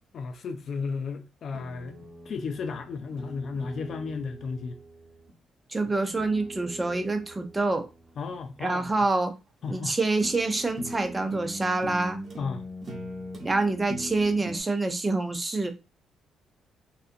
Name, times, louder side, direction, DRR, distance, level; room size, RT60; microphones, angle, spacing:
voice 1, 0.1-2.0 2.3-4.8 8.2-8.9 9.6-10.0 12.4-12.6, left 5 dB, 60° left, 0.3 m, -34 dB
sound 1, 1.5-5.3 6.1-8.9 9.7-9.8 10.2-14.6, right 1 dB, 35° right, 1.0 m, -41 dB
voice 2, 5.7-7.9 8.6-9.3 9.7-12.2 13.4-15.7, right 2 dB, 20° right, 0.5 m, -26 dB
2.6 x 2.4 x 2.6 m
cardioid pair, 90°, 0 cm